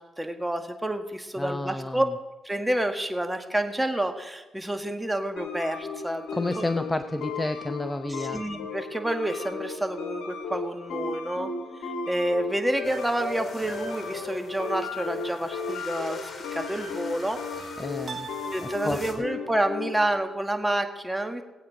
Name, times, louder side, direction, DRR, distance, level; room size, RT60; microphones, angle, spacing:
voice 1, 0.0-2.1 2.4-6.6 7.2-7.3 8.1-11.5 11.8-17.4 18.5-21.4, right 1 dB, 10° right, 5 dB, 1.7 m, -29 dB
voice 2, 1.4-2.1 6.3-8.4 17.8-18.3 18.6-19.2, left 2 dB, 15° left, 10 dB, 0.6 m, -30 dB
sound 1, 5.4-20.1, left 4 dB, 85° left, 1.4 m, -36 dB
sound 2, 12.8-19.1, left 3 dB, 40° left, 2.3 m, -44 dB
sound 3, 15.5-16.2 18.1-19.5, right 6 dB, 50° right, 1.3 m, -43 dB
19.0 x 8.5 x 5.1 m, 1.1 s
supercardioid pair, 55°, 0 cm